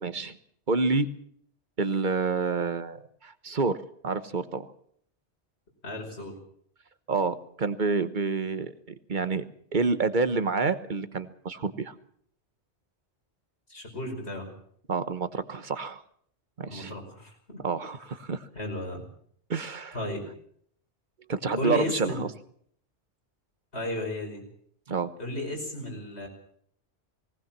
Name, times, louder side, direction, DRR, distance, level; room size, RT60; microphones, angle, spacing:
voice 1, 0.0-0.4 0.7-1.1 1.8-3.0 3.2-3.8 4.0-4.7 7.1-8.7 9.1-9.4 9.7-11.9 14.9-16.0 16.6-16.9 17.6-18.4 19.5-19.9 21.3-22.3 24.9-25.1, right 4 dB, 45° right, 12 dB, 1.2 m, -28 dB
voice 2, 5.8-6.3 13.7-14.5 16.7-17.6 18.5-19.0 19.9-20.2 21.6-22.2 23.7-24.4 25.2-26.3, left 1 dB, 70° left, 2 dB, 5.7 m, -34 dB
19.5 x 18.5 x 7.4 m, 0.64 s
omnidirectional pair, 1.1 m